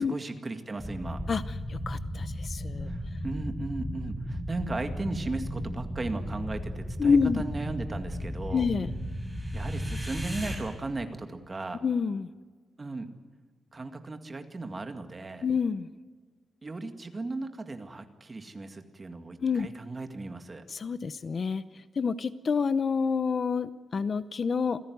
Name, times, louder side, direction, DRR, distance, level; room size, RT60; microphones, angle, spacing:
voice 1, 0.0-1.2 2.9-8.7 9.5-11.8 12.8-13.1 13.7-15.5 16.6-20.6, right 3 dB, 25° right, 7 dB, 2.0 m, -36 dB
sound 1, 0.8-10.6, equal, 5° left, 6.4 m, -35 dB
voice 2, 1.3-2.9 7.0-7.4 8.5-8.9 11.8-12.3 15.4-15.9 19.4-19.7 20.7-24.8, left 5 dB, 45° left, 14 dB, 0.8 m, -28 dB
28.0 x 16.0 x 9.5 m, 1.5 s
wide cardioid pair, 155°, 0 cm